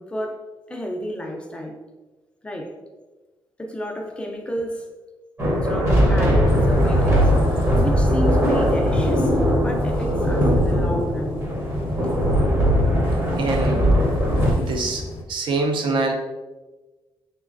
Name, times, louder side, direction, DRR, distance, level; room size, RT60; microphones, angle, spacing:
voice 1, 0.0-1.8 2.4-2.8 3.6-4.9 5.5-7.4 7.8-11.4 12.0-12.1, left 1 dB, 10° left, 2 dB, 0.4 m, -31 dB
sound 1, 5.4-14.5, equal, 25° right, 0.8 m, -19 dB
sound 2, 6.5-15.2, left 1 dB, 80° left, 0.5 m, -34 dB
voice 2, 13.4-13.9 14.6-16.1, right 3 dB, 65° right, 3 dB, 0.5 m, -24 dB
3.2 x 3.0 x 2.4 m, 1.2 s
wide cardioid pair, 145°, 9 cm